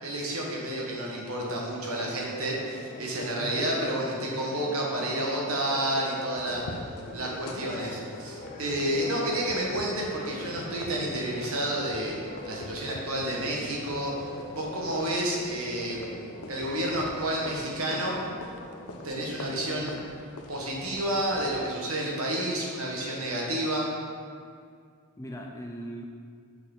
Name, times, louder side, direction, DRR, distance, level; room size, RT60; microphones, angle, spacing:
voice 1, 0.0-6.8 7.1-12.2 12.4-14.1 14.5-16.1 16.5-18.2 19.0-19.9 20.5-23.9, right 1 dB, 70° right, -2 dB, 1.4 m, -30 dB
Church bell, 1.9-20.2, left 1 dB, 40° left, 0.9 m, -43 dB
voice 2, 3.4-4.5 25.2-26.0, left 1 dB, 15° left, 1 dB, 0.4 m, -39 dB
sound 1, 6.3-21.5, left 2 dB, 80° left, 0.7 m, -45 dB
6.3 x 6.2 x 3.8 m, 2.2 s
head